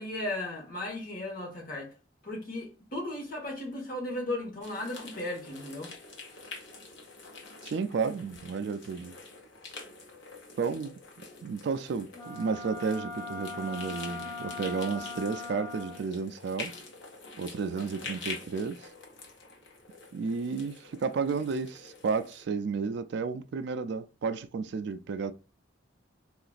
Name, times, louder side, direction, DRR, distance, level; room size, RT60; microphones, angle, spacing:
voice 1, 0.0-1.9 2.2-5.9, left 1 dB, 50° left, 1.4 m, -36 dB
sound 1, 4.6-22.4, left 4 dB, 85° left, 0.9 m, -46 dB
voice 2, 7.6-9.1 10.6-10.9 11.4-16.7 17.4-18.8 20.1-25.3, right 5 dB, 65° right, 0.3 m, -32 dB
Wind instrument woodwind instrument, 12.1-16.2, left 3 dB, 20° left, 0.4 m, -40 dB
3.8 x 2.4 x 2.4 m
head